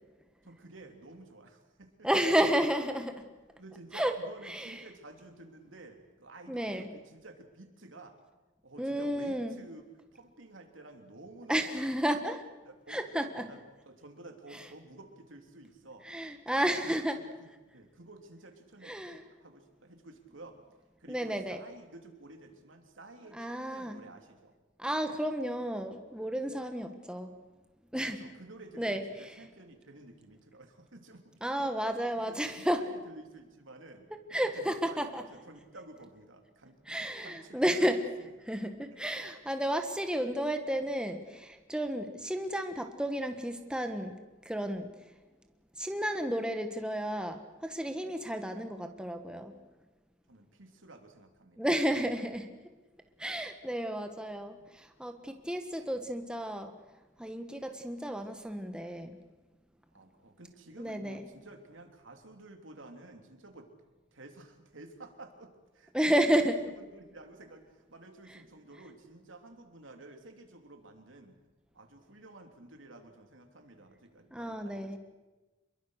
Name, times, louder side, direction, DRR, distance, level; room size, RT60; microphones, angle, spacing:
voice 1, 0.4-2.1 3.6-8.2 8.6-9.8 10.1-12.0 12.6-13.0 13.3-16.1 16.6-20.6 21.0-24.5 28.1-31.5 31.9-32.0 32.2-34.1 34.4-35.0 35.3-38.0 38.9-39.3 40.1-40.3 50.3-51.7 59.9-63.7 64.1-71.4 71.7-75.0, right 2 dB, 80° right, 5 dB, 3.3 m, -52 dB
voice 2, 2.0-3.2 3.9-4.1 4.5-4.8 6.5-6.9 8.8-9.6 11.5-12.4 12.9-13.5 16.0-17.2 18.8-19.2 21.1-21.6 23.3-24.0 24.8-27.3 27.9-28.2 28.8-29.4 31.4-32.8 34.3-35.2 36.9-38.0 38.5-44.9 45.8-49.5 51.6-52.5 53.2-56.7 57.2-59.2 60.8-61.2 65.9-66.6 74.3-75.0, equal, 5° right, 6 dB, 1.5 m, -32 dB
27.5 x 22.0 x 6.5 m, 1.2 s
head